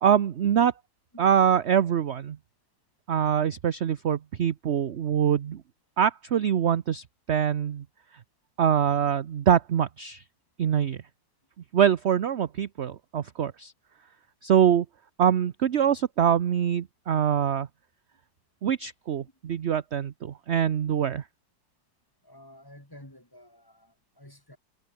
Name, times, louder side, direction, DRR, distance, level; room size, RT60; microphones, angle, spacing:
voice 1, 0.0-0.7 1.2-2.4 3.1-5.6 6.0-7.8 8.6-10.2 10.6-11.0 11.7-13.7 14.4-14.9 15.2-17.7 18.6-21.2, right 9 dB, 55° right, 0.8 m, -24 dB
voice 2, 22.2-24.6, left 1 dB, 10° left, 3.2 m, -51 dB
omnidirectional pair, 2.0 m